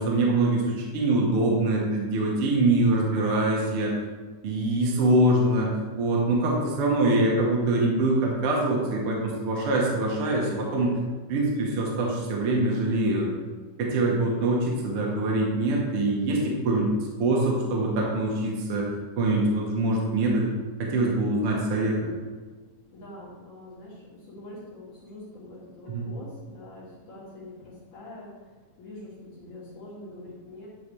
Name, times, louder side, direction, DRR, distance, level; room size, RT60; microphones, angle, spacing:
voice 1, 0.0-3.9 4.4-5.7 6.0-10.9 11.3-13.3 13.8-16.9 17.2-18.9 19.2-20.5 20.8-22.1 25.9-26.1, right 2 dB, 60° right, -2 dB, 1.7 m, -24 dB
voice 2, 22.9-28.3 28.8-29.1 29.4-30.7, left 1 dB, 70° left, -10 dB, 3.8 m, -44 dB
10.5 x 4.7 x 3.3 m, 1.4 s
omnidirectional pair, 3.6 m